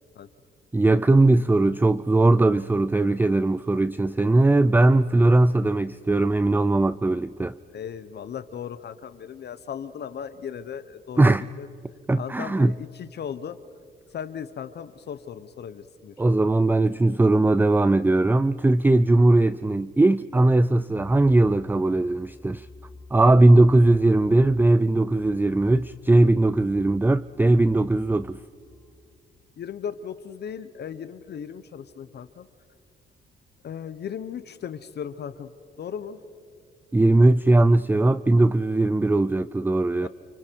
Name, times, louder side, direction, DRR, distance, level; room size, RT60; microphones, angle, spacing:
voice 1, 0.7-7.6 11.2-11.4 12.1-12.7 16.2-22.7 23.1-28.4 36.9-40.1, right 2 dB, 10° right, 0.5 m, -19 dB
voice 2, 7.7-11.7 12.2-13.6 14.1-16.2 29.6-32.5 33.6-35.5 35.8-36.2 37.3-37.4 40.0-40.1, left 8 dB, 55° left, 1.1 m, -37 dB
sound 1, 20.9-29.1, left 2 dB, 10° left, 3.1 m, -50 dB
29.5 x 29.0 x 4.7 m
cardioid pair, 90°, 20 cm